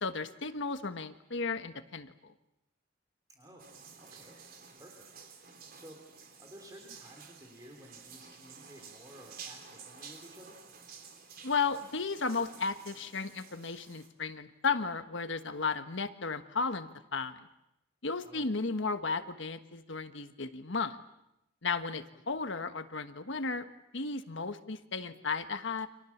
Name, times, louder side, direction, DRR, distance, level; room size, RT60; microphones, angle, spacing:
voice 1, 0.0-2.3 11.4-17.5 18.0-21.0 21.6-23.7 23.9-25.9, left 4 dB, 65° left, 10 dB, 1.4 m, -34 dB
voice 2, 3.3-3.7 4.0-4.4 4.8-5.1 5.3-10.6 18.2-18.5 22.3-22.4, right 1 dB, 20° right, 2 dB, 3.5 m, -54 dB
sound 1, 3.6-14.1, right 6 dB, 50° right, 3.7 m, -52 dB
30.0 x 26.5 x 7.3 m, 0.86 s
head